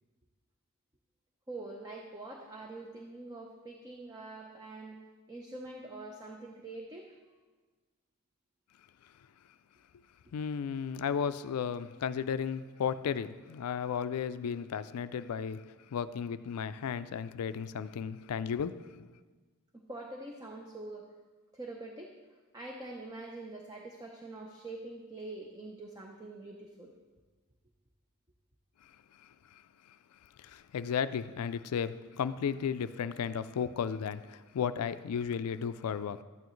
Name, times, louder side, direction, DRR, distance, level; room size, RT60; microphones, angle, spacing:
voice 1, 1.5-5.0 5.3-7.2 19.7-21.1 21.5-22.1 22.5-26.9, right 2 dB, 15° right, 0.6 m, -44 dB
voice 2, 10.3-15.6 15.9-19.1 30.4-36.2, left 7 dB, 85° left, 0.4 m, -34 dB
12.0 x 9.1 x 3.1 m
head